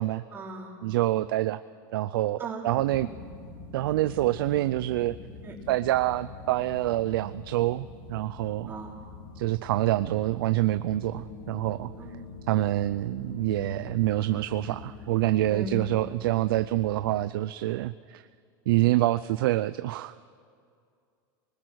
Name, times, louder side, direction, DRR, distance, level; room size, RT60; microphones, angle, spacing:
voice 1, 0.3-0.7 2.4-2.6 5.4-5.5 8.7-8.9 12.0-12.4 15.5-15.7, right 3 dB, 20° right, -2 dB, 3.6 m, -38 dB
voice 2, 0.8-1.6 1.9-3.1 3.7-5.2 5.7-8.7 9.4-11.9 12.5-18.2 18.7-20.1, right 15 dB, 90° right, 13 dB, 0.5 m, -26 dB
sound 1, 2.7-17.1, left 4 dB, 80° left, 6.5 m, -44 dB
28.5 x 20.5 x 6.4 m, 2.3 s
supercardioid pair, 165°, 11 cm